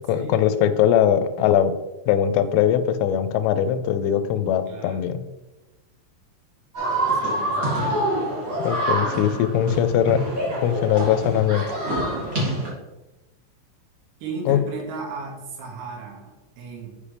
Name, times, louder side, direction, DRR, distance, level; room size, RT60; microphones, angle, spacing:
voice 1, 0.1-1.7 2.1-5.2 8.6-10.2 10.6-11.6 14.5-14.6, left 10 dB, 85° left, 11 dB, 2.9 m, -21 dB
voice 2, 4.7-5.1 7.1-8.1 14.2-17.0, right 4 dB, 90° right, -2 dB, 4.5 m, -36 dB
sound 1, 6.7-12.7, right 1 dB, 55° right, 0.9 m, -26 dB
8.5 x 5.2 x 3.3 m, 1.0 s
omnidirectional pair, 6.0 m